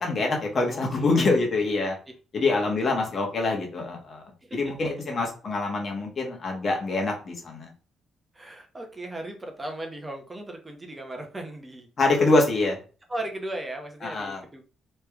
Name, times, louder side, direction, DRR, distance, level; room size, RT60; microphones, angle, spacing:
voice 1, 0.0-2.0 2.3-4.2 4.5-7.7 12.0-12.8 14.0-14.4, left 3 dB, 45° left, 1 dB, 1.3 m, -25 dB
voice 2, 0.7-1.7 2.6-3.0 4.4-5.1 8.3-11.9 13.1-14.6, right 1 dB, 20° right, 4 dB, 0.8 m, -38 dB
3.2 x 3.2 x 3.5 m, 0.36 s
cardioid pair, 90°, 0 cm